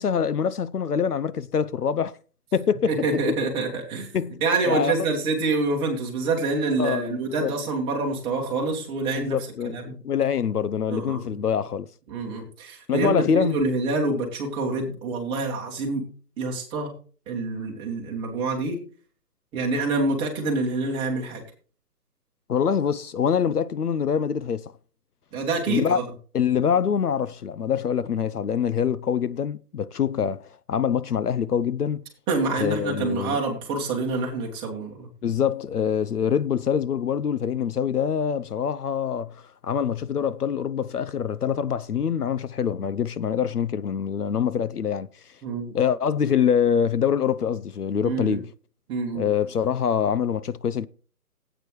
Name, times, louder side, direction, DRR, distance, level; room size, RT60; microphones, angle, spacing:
voice 1, 0.0-2.2 2.5-2.9 4.1-4.9 6.8-7.5 9.1-11.9 12.9-13.6 22.5-24.6 25.7-26.0 26.3-32.0 32.6-33.4 35.2-39.3 39.6-45.1 45.7-48.5 49.1-50.9, left 7 dB, 70° left, 0.7 m, -25 dB
voice 2, 2.9-4.1 4.4-9.4 9.6-9.9 10.9-11.4 12.1-16.0 16.4-16.9 17.3-18.8 19.5-21.4 25.3-26.0 32.3-35.1 45.4-45.7 48.0-48.4 48.9-49.3, right 3 dB, 10° right, 1.8 m, -26 dB
15.5 x 9.0 x 3.2 m
figure-of-eight pair, 155°, 47 cm